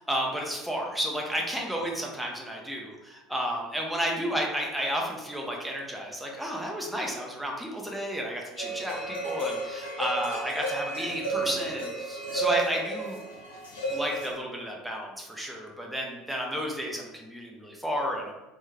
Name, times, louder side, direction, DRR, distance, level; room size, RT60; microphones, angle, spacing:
voice 1, 0.1-13.2 13.9-18.3, equal, ahead, -1 dB, 0.6 m, -32 dB
sound 1, 8.6-14.3, right 3 dB, 65° left, 0.8 m, -32 dB
3.1 x 2.2 x 3.4 m, 1.1 s
figure-of-eight pair, 65°, 0 cm